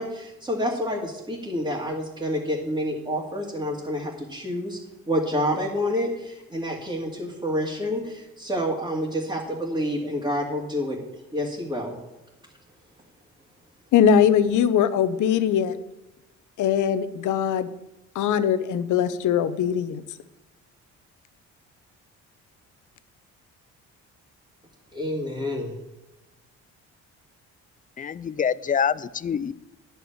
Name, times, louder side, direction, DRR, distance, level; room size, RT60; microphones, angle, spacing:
voice 1, 0.0-4.8 5.1-11.0 11.3-12.0 24.9-25.8, equal, 15° right, 2.6 m, -28 dB
voice 2, 13.9-15.8 16.6-17.7 18.1-20.0, left 8 dB, 75° left, 0.9 m, -21 dB
voice 3, 28.0-29.5, left 7 dB, 30° left, 0.4 m, -25 dB
10.5 x 6.0 x 8.7 m
cardioid pair, 90°, 30 cm